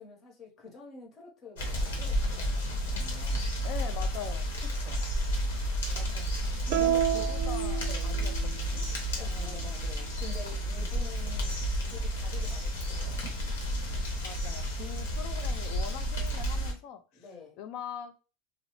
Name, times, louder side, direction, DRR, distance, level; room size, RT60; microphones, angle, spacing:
voice 1, 0.0-3.5 4.8-5.0 6.7-7.3 7.9-8.2 9.2-11.5 11.9-13.4 17.1-17.6, left 3 dB, 35° left, 0 dB, 1.1 m, -47 dB
sound 1, 1.6-16.7, equal, 90° left, 0.9 m, -31 dB
voice 2, 3.6-4.5 5.9-6.3 7.0-8.9 10.7-10.9 14.2-17.3 17.6-18.1, left 8 dB, 55° left, 8 dB, 0.5 m, -42 dB
sound 2, 6.7-8.5, right 11 dB, 55° right, 0.3 m, -29 dB
2.6 x 2.0 x 3.1 m, 0.33 s
supercardioid pair, 120°, 0 cm